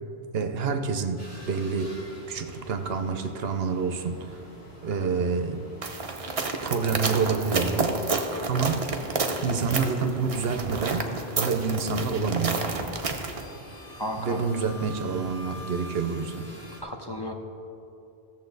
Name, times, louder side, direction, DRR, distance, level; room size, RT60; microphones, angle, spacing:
voice 1, 0.3-1.9 2.3-4.4 4.8-5.7 6.6-8.0 8.5-8.9 9.4-11.1 11.4-12.7 14.2-16.5, right 5 dB, 70° right, 8 dB, 0.9 m, -28 dB
sound 1, 1.2-16.8, equal, 75° left, 2.2 m, -46 dB
sound 2, 5.8-13.4, right 3 dB, 35° right, 0.8 m, -30 dB
voice 2, 14.0-14.4 16.8-17.3, equal, 30° left, 1 dB, 0.5 m, -33 dB
16.5 x 7.2 x 4.0 m, 2.8 s
omnidirectional pair, 1.1 m